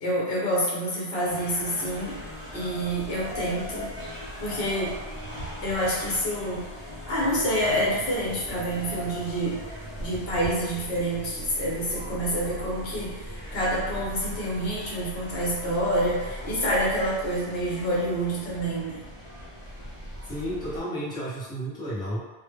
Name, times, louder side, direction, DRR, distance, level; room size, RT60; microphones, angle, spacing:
voice 1, 0.0-2.2 2.5-3.9 4.4-5.0 5.6-6.7 7.1-9.6 10.0-19.0, equal, 75° left, -5 dB, 1.0 m, -27 dB
sound 1, 1.2-20.8, equal, 45° left, 0.6 m, -39 dB
voice 2, 20.3-22.3, equal, 5° left, -10 dB, 0.6 m, -32 dB
2.0 x 2.0 x 3.4 m, 1.2 s
omnidirectional pair, 1.1 m